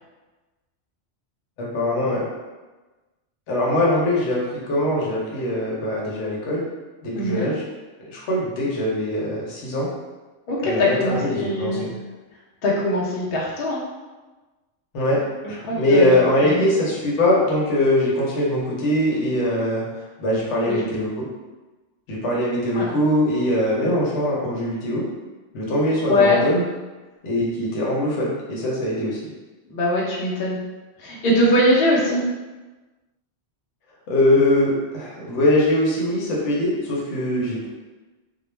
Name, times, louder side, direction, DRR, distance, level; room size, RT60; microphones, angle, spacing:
voice 1, 1.6-2.3 3.5-6.6 7.0-7.6 8.0-9.9 10.6-11.9 14.9-15.2 15.5-21.1 22.1-25.0 25.5-26.6 27.2-29.3 34.1-37.7, left 1 dB, 90° left, -4 dB, 1.0 m, -22 dB
voice 2, 7.2-7.5 10.5-11.9 12.6-13.8 15.4-16.1 16.4-16.7 20.6-20.8 22.7-22.8 26.1-26.4 29.7-30.6 31.0-32.2, left 1 dB, 60° left, -5 dB, 0.8 m, -21 dB
2.4 x 2.0 x 3.1 m, 1.2 s
omnidirectional pair, 1.2 m